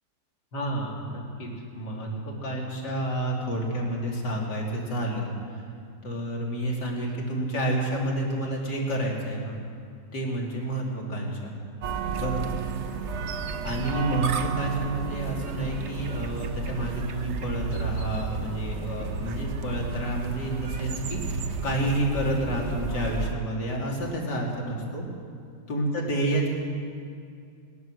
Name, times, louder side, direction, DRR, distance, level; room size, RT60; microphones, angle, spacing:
voice 1, 0.5-5.3 6.0-9.6 10.1-11.5 12.2-12.5 13.6-25.0 25.7-26.5, right 1 dB, 65° left, -2 dB, 3.1 m, -29 dB
sound 1, 11.8-23.3, right 5 dB, 50° right, 0.9 m, -32 dB
20.0 x 11.0 x 6.3 m, 2.3 s
omnidirectional pair, 1.9 m